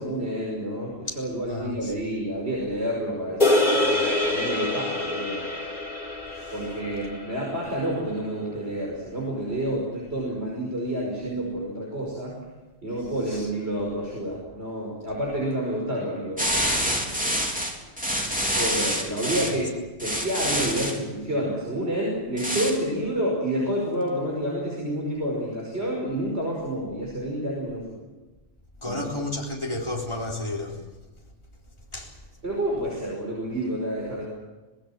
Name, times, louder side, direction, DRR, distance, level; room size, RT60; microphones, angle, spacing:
voice 1, 0.0-5.5 6.5-12.4 12.8-17.5 18.5-19.7 20.0-28.0 28.8-29.1 32.4-34.3, right 1 dB, 60° right, 5.9 m, -29 dB
voice 2, 1.5-1.9 6.3-6.5 13.3-13.5 19.2-19.4 28.8-30.8 31.9-32.2, left 2 dB, 25° left, 4.2 m, -32 dB
sound 1, 3.4-7.9, left 1 dB, 40° left, 4.0 m, -25 dB
sound 2, 16.4-19.6 20.0-21.0 22.4-22.8, equal, 5° right, 3.3 m, -26 dB
26.0 x 19.5 x 7.5 m
omnidirectional pair, 1.2 m